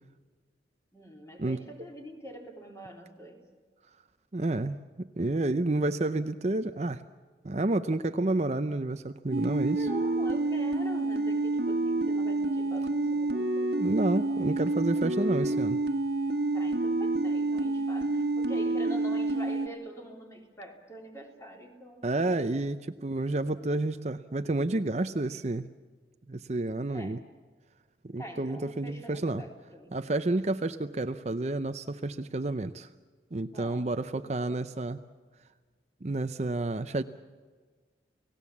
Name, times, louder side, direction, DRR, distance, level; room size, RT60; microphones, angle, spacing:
voice 1, 0.9-3.4 9.7-13.8 16.5-22.2 26.9-27.3 28.2-30.0 33.5-34.7, right 1 dB, 15° left, 2 dB, 3.3 m, -45 dB
voice 2, 4.3-7.0 7.4-9.9 13.6-15.8 22.0-25.7 26.3-27.2 28.0-29.4 29.9-32.9 33.3-35.0 36.0-37.0, right 2 dB, 40° right, 10 dB, 0.6 m, -30 dB
sound 1, 9.3-19.7, right 2 dB, 60° right, 1.4 m, -28 dB
29.5 x 17.5 x 7.2 m, 1.5 s
head